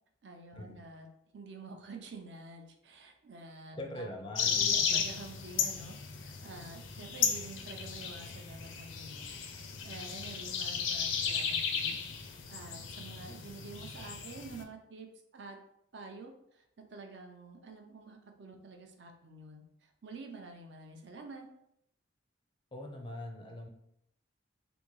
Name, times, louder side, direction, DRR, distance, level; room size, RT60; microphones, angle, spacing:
voice 1, 0.2-1.1 1.3-15.6 15.9-21.5, right 3 dB, 65° right, 3 dB, 0.5 m, -49 dB
voice 2, 3.8-5.0 22.7-23.7, left 1 dB, 25° left, 2 dB, 0.4 m, -42 dB
sound 1, 4.4-14.6, left 7 dB, 85° left, 0.5 m, -34 dB
3.5 x 2.6 x 3.1 m, 0.77 s
head